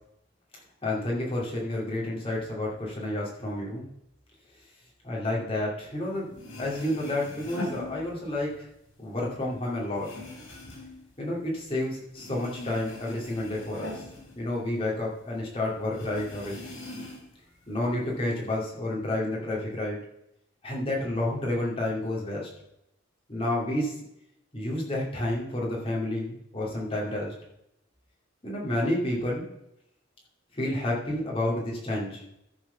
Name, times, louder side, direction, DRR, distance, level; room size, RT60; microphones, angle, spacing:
voice 1, 0.8-3.9 5.0-6.3 6.6-8.7 9.0-10.1 11.2-14.0 14.4-16.6 17.7-20.0 20.6-22.5 23.3-23.9 24.5-27.3 28.4-29.5 30.5-32.2, left 1 dB, 25° left, -4 dB, 2.6 m, -30 dB
sound 1, 6.1-6.2 6.3-8.6 8.9-11.8 12.1-15.1 15.4-15.5 15.9-17.4 17.8-18.6, left 2 dB, 70° left, 3.8 m, -42 dB
13.5 x 4.8 x 5.6 m, 0.80 s
head